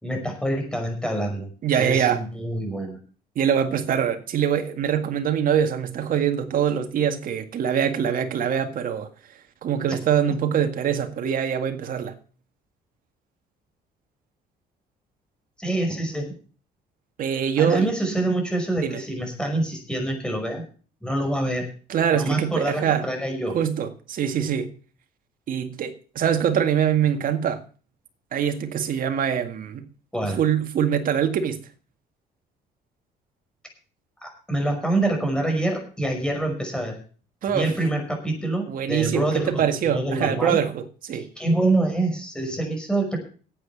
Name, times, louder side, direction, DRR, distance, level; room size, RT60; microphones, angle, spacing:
voice 1, 0.0-1.5 1.7-3.0 15.6-16.3 17.6-20.6 21.0-21.7 22.1-23.6 30.1-30.4 34.2-37.0 37.5-40.6 41.1-43.2, right 2 dB, 5° left, 5.6 m, -26 dB
voice 2, 1.6-2.2 3.4-9.1 9.6-12.1 17.2-17.9 18.8-19.0 21.9-23.0 23.5-24.7 25.5-27.6 28.3-29.8 30.4-31.6 37.4-37.7 38.7-41.3, right 8 dB, 55° right, 2.0 m, -23 dB
11.5 x 8.6 x 7.2 m
cardioid pair, 110°, 17 cm